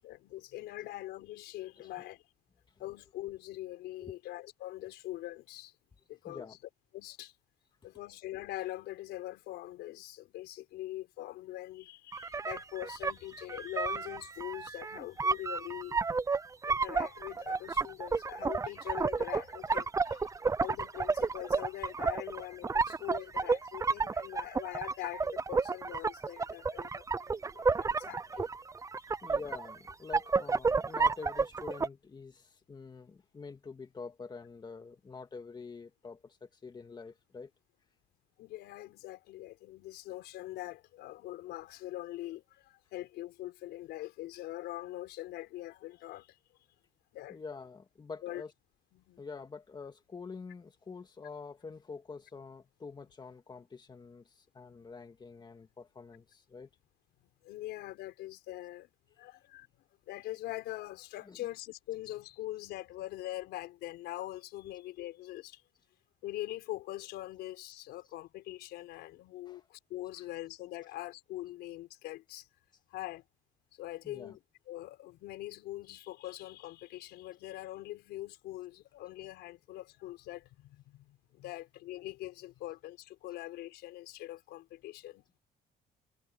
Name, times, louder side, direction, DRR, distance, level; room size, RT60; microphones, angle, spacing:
voice 1, 0.0-2.2 2.8-5.7 6.1-6.6 6.9-7.3 7.8-16.0 16.6-28.4 38.4-46.4 47.1-47.4 48.2-48.4 48.9-49.2 57.4-58.9 59.2-59.7 60.1-65.6 66.2-72.5 72.9-73.2 73.7-74.4 74.7-85.4, left 15 dB, 80° left, 4.9 m, -43 dB
voice 2, 6.3-6.6 28.4-28.5 29.2-37.5 47.3-48.5 49.2-56.7 61.3-61.4 69.5-69.6 74.0-74.4, left 4 dB, 25° left, 1.9 m, -46 dB
sound 1, 12.1-31.9, right 4 dB, 20° right, 0.6 m, -31 dB
cardioid pair, 110°, 17 cm